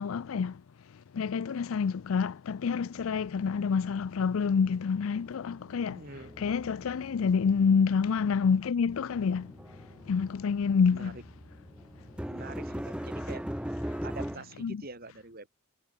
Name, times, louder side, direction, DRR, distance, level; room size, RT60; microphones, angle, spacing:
voice 1, 0.0-6.1 6.4-11.2 13.9-14.0 14.6-14.8, left 6 dB, 85° left, 0.4 m, -28 dB
sound 1, 2.9-4.6 4.9-14.4, equal, 5° right, 0.7 m, -41 dB
voice 2, 5.9-6.3 10.9-11.1 12.3-13.4 14.0-15.5, right 3 dB, 45° right, 3.3 m, -45 dB
head